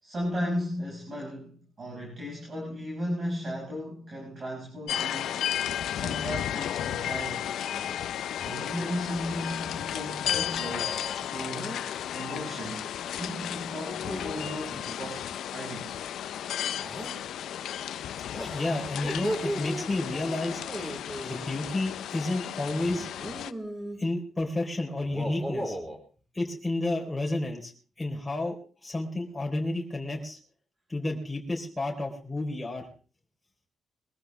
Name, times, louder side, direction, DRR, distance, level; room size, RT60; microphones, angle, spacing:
voice 1, 0.0-5.4 5.9-7.6 8.4-11.8 12.1-12.9 13.1-15.9, equal, 40° right, -2 dB, 6.0 m, -36 dB
sound 1, 4.9-23.5, left 10 dB, 80° left, 0.6 m, -34 dB
sound 2, 7.6-8.0 8.4-8.9 10.6-11.9 13.9-15.3 16.7-17.1 18.3-19.9 20.6-21.4 22.9-24.0 25.0-26.0, right 1 dB, 20° right, 4.7 m, -37 dB
voice 2, 18.5-20.6 21.2-23.1 24.0-25.8 26.3-27.7 28.0-28.5 28.8-30.4 30.9-32.9, left 2 dB, 10° left, -1 dB, 4.1 m, -31 dB
22.5 x 14.5 x 3.5 m, 0.38 s
cardioid pair, 100°, 0 cm